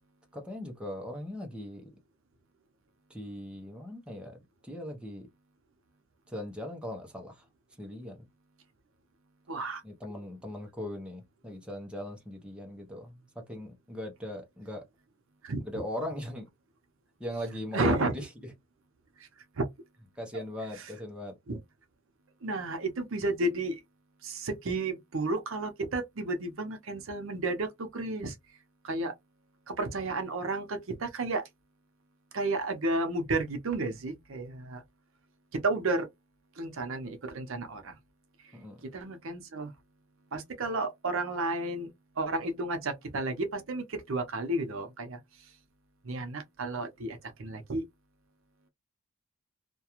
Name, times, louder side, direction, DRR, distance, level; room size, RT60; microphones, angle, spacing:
voice 1, 0.3-1.9 3.1-5.3 6.3-7.4 7.8-8.2 9.8-13.2 13.5-14.8 15.7-16.5 17.2-18.3 20.2-21.4 38.5-38.8, left 1 dB, 5° right, 0.5 m, -39 dB
voice 2, 9.5-9.8 15.4-15.6 17.7-18.1 19.2-19.3 19.6-19.7 20.8-20.9 21.5-21.6 22.4-23.8 24.2-28.4 28.8-29.1 29.7-31.5 32.3-34.8 35.5-36.1 36.6-38.0 38.4-38.5 38.8-39.7 40.3-41.9 42.2-45.5 46.0-47.8, right 2 dB, 65° right, 0.6 m, -32 dB
2.4 x 2.2 x 2.9 m
head